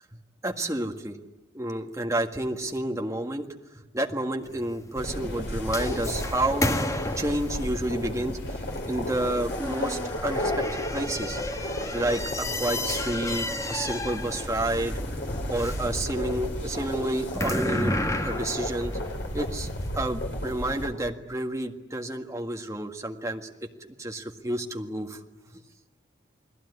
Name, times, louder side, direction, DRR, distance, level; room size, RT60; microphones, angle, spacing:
voice 1, 0.4-1.2 1.5-3.5 3.8-6.7 7.2-10.7 10.9-15.0 15.5-19.0 19.3-19.7 20.0-23.5 23.8-25.2, right 1 dB, 15° right, 3 dB, 1.8 m, -30 dB
sound 1, 4.4-19.8, left 1 dB, 15° left, 1.5 m, -33 dB
sound 2, 4.9-20.9, left 1 dB, 65° left, 4.3 m, -33 dB
29.0 x 20.5 x 9.8 m, 1.1 s
head